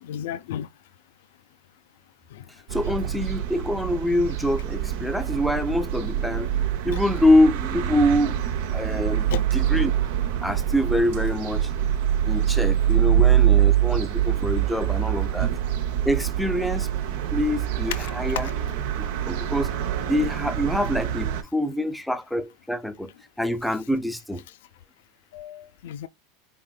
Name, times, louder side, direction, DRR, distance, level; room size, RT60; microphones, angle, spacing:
voice 1, 0.0-0.7 2.3-2.4 6.9-7.0 9.3-9.4 17.9-18.1 18.4-18.5 25.3-26.1, left 10 dB, 75° left, 0.4 m, -33 dB
voice 2, 2.7-8.4 8.7-9.9 10.4-11.7 12.3-15.5 16.1-16.9 17.3-18.5 19.0-19.7 20.0-23.1 23.4-24.4, left 1 dB, ahead, 0.4 m, -25 dB
sound 1, 2.7-21.4, right 11 dB, 70° right, 0.7 m, -25 dB
4.0 x 3.6 x 2.2 m
supercardioid pair, 165°, 0 cm